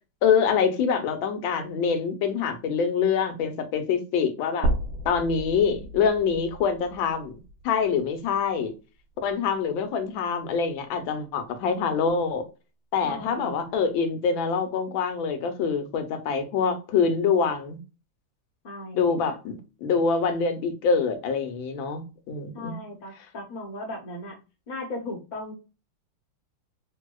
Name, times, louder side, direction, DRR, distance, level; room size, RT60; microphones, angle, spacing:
voice 1, 0.2-4.7 5.0-7.4 7.6-8.7 9.2-12.4 12.9-17.8 18.9-22.7, left 6 dB, 85° left, 1.5 m, -25 dB
sound 1, 4.6-8.8 9.2-9.3 10.7-10.8, right 1 dB, 80° right, 1.3 m, -33 dB
voice 2, 13.0-13.8 18.6-19.4 22.5-24.4 24.7-25.5, left 1 dB, 35° left, 0.8 m, -37 dB
3.6 x 2.7 x 2.2 m
omnidirectional pair, 2.1 m